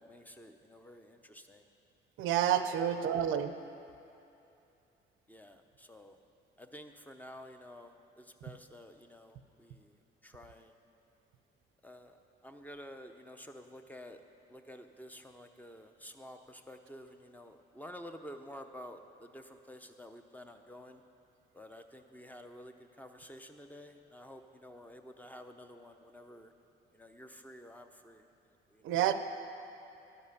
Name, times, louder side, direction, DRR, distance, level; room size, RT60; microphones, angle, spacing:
voice 1, 0.0-1.7 3.0-3.2 5.3-6.2 6.6-10.7 11.8-12.2 12.4-14.2 14.5-21.0 21.5-26.5 26.9-28.3 28.7-28.8, equal, 10° left, 6 dB, 0.6 m, -51 dB
voice 2, 2.2-3.5 28.8-29.1, right 10 dB, 85° right, 10 dB, 0.5 m, -29 dB
11.0 x 5.4 x 6.6 m, 2.7 s
cardioid pair, 90°, 20 cm